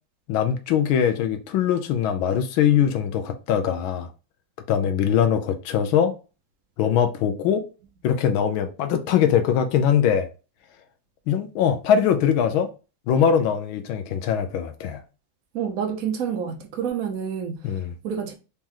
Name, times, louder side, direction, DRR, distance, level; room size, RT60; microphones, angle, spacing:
voice 1, 0.3-4.1 4.7-6.1 6.8-7.6 8.0-10.3 11.3-12.7 13.1-15.0 17.6-17.9, left 8 dB, 80° left, 1.4 m, -22 dB
voice 2, 15.5-18.3, right 7 dB, 60° right, 1.0 m, -29 dB
4.2 x 3.0 x 3.6 m
omnidirectional pair, 2.2 m